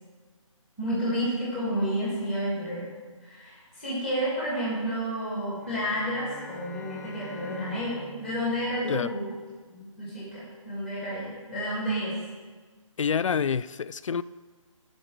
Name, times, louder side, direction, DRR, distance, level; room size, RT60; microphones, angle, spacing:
voice 1, 0.8-2.9 3.2-9.3 9.7-12.2, equal, ahead, -8 dB, 1.9 m, -30 dB
Bowed string instrument, 5.5-9.9, left 4 dB, 30° left, 0.7 m, -46 dB
voice 2, 13.0-14.2, left 6 dB, 65° left, 17 dB, 0.4 m, -27 dB
12.5 x 5.2 x 6.2 m, 1.4 s
hypercardioid pair, 180°, 17 cm